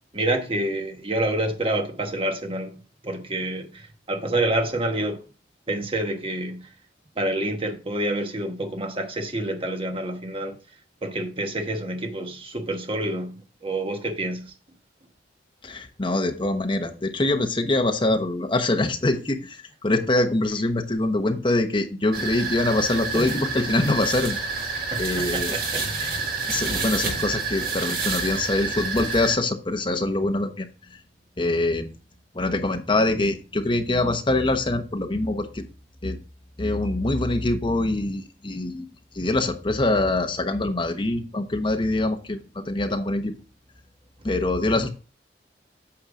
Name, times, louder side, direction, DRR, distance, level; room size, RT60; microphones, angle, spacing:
voice 1, 0.1-2.7 3.0-5.2 5.7-6.6 7.2-10.6 11.0-14.5 24.7-26.2, right 1 dB, 30° right, 1.2 m, -28 dB
voice 2, 15.6-24.4 25.0-25.5 26.5-30.7 31.4-31.9 32.3-35.7 36.0-36.2 36.6-38.8 39.1-43.3 44.2-45.0, left 2 dB, 30° left, 1.0 m, -24 dB
sound 1, 22.1-29.4, right 4 dB, 55° right, 2.1 m, -28 dB
8.7 x 5.7 x 3.8 m
head